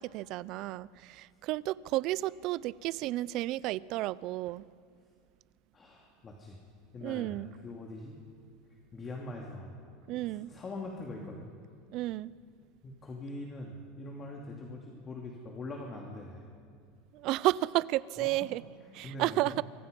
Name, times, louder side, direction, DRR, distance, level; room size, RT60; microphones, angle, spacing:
voice 1, 0.0-4.7 7.0-7.5 10.1-10.5 11.9-12.3 17.1-18.6 18.9-19.6, right 17 dB, 55° right, 20 dB, 0.5 m, -32 dB
voice 2, 5.7-6.6 6.9-7.4 7.6-8.2 8.7-9.8 10.1-11.5 12.8-16.4 18.2-18.5 19.0-19.6, left 2 dB, 25° left, 0 dB, 2.8 m, -43 dB
28.0 x 24.5 x 5.4 m, 2.2 s
supercardioid pair, 135°, 0 cm